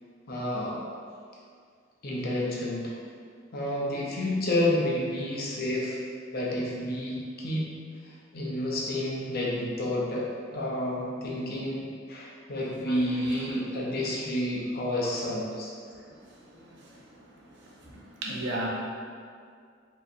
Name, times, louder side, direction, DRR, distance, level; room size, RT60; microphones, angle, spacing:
voice 1, 0.3-0.8 2.0-3.0 3.5-6.0 6.3-7.7 8.0-10.3 10.5-15.7, left 1 dB, 50° left, -4 dB, 0.7 m, -30 dB
voice 2, 12.9-13.5 16.5-16.7 17.8-18.7, right 1 dB, 60° right, -3 dB, 0.7 m, -35 dB
4.6 x 2.8 x 2.6 m, 2.1 s
head